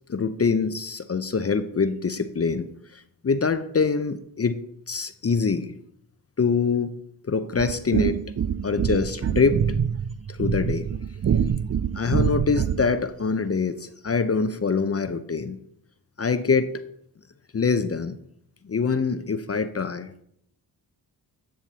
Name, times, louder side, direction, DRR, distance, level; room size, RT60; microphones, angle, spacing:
voice 1, 0.1-5.7 6.4-7.0 7.3-8.2 8.6-9.6 10.3-10.9 11.9-15.6 16.2-16.8 17.5-18.2 18.6-20.2, left 5 dB, 35° left, 10 dB, 0.7 m, -24 dB
sound 1, 7.6-12.9, right 8 dB, 35° right, 0.5 m, -25 dB
10.0 x 7.2 x 4.1 m, 0.71 s
cardioid pair, 55°, 44 cm